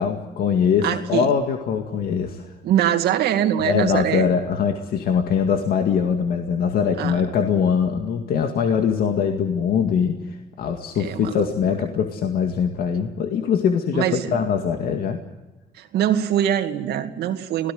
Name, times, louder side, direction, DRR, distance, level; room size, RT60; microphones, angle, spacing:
voice 1, 0.0-2.5 3.6-15.2, left 7 dB, 65° left, 4 dB, 2.1 m, -22 dB
voice 2, 0.8-1.3 2.6-4.3 7.0-7.2 11.0-11.5 13.9-14.3 15.7-17.7, right 10 dB, 75° right, 7 dB, 2.3 m, -23 dB
26.0 x 18.0 x 7.9 m, 1.1 s
cardioid pair, 110°, 17 cm